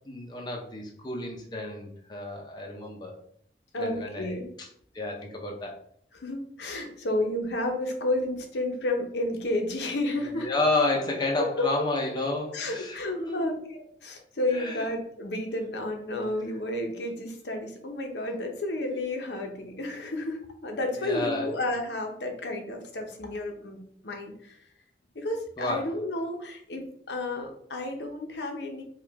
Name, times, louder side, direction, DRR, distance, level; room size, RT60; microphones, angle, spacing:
voice 1, 0.1-3.1 3.8-4.7 4.9-5.8 10.3-13.5 14.5-14.8 21.0-21.5 25.6-25.9, left 2 dB, 25° left, 0 dB, 0.7 m, -31 dB
voice 2, 3.7-4.5 6.1-10.5 11.4-11.9 12.5-24.6 25.1-28.8, left 1 dB, 80° left, 3 dB, 0.8 m, -31 dB
4.9 x 2.4 x 3.5 m, 0.65 s
head